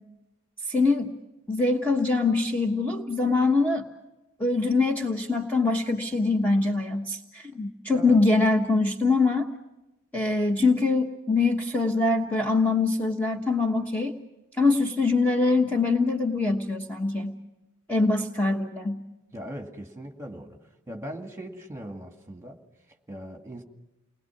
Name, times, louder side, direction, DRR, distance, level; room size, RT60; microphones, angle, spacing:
voice 1, 0.7-1.1 1.5-3.8 4.4-9.5 10.1-14.1 14.6-17.4 17.9-19.0, left 3 dB, 10° left, 1.3 m, -23 dB
voice 2, 19.3-20.6 20.9-22.6 23.1-23.6, equal, 15° right, 2.2 m, -39 dB
29.5 x 21.0 x 6.0 m
head